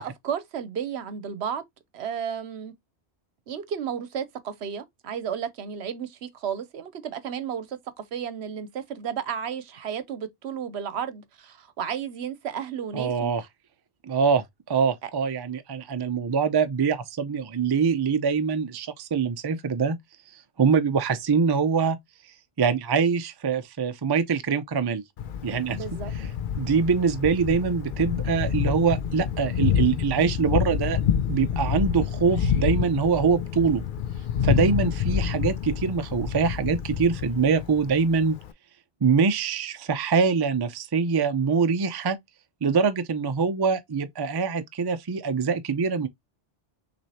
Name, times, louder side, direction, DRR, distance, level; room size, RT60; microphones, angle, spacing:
voice 1, 0.0-1.6 1.9-2.7 3.5-13.3 15.0-15.1 25.7-26.1, right 8 dB, 70° right, 1.0 m, -33 dB
voice 2, 12.9-13.4 14.0-20.0 20.6-22.0 22.6-25.0 25.4-25.8 26.2-26.3 26.6-31.0 31.3-33.8 34.4-38.4 39.0-42.2 42.6-46.1, right 5 dB, 40° right, 0.3 m, -24 dB
Thunder, 25.2-38.5, left 8 dB, 55° left, 0.6 m, -28 dB
6.1 x 3.0 x 2.8 m
omnidirectional pair, 1.2 m